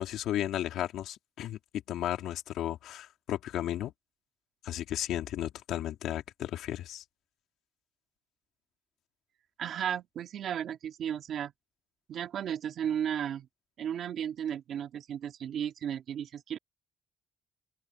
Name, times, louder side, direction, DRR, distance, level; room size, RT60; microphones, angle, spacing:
voice 1, 0.0-3.9 4.6-7.0, left 12 dB, 85° left, 2.9 m, -34 dB
voice 2, 9.6-11.5 12.1-13.5 13.8-16.6, right 9 dB, 70° right, 2.2 m, -34 dB
open air
cardioid pair, 90°, 0 cm